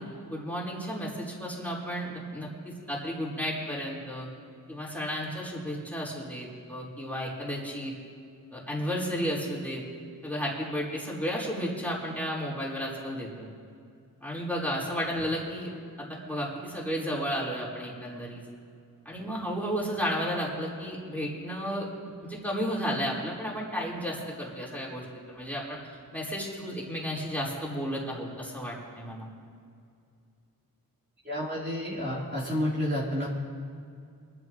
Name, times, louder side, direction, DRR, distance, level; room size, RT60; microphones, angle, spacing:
voice 1, 0.0-4.3 4.7-7.9 8.5-9.8 10.2-13.5 14.2-15.7 16.3-18.4 19.0-21.9 22.2-25.8 26.1-29.3, equal, 5° left, -5 dB, 4.3 m, -33 dB
voice 2, 31.2-33.3, left 1 dB, 30° right, -6 dB, 3.8 m, -30 dB
24.0 x 13.5 x 3.1 m, 2.3 s
cardioid pair, 75°, 36 cm